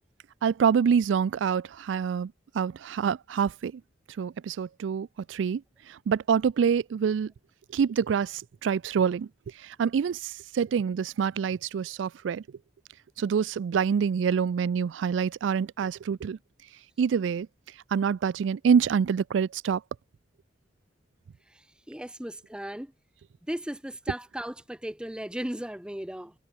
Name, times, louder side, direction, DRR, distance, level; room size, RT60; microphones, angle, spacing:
voice 1, 0.4-3.8 4.2-5.6 5.9-7.3 7.7-9.3 9.6-12.4 13.2-16.4 17.0-17.5 17.9-19.8, right 7 dB, 85° right, 0.3 m, -26 dB
voice 2, 21.9-22.9 23.5-26.3, right 1 dB, 5° right, 0.6 m, -36 dB
head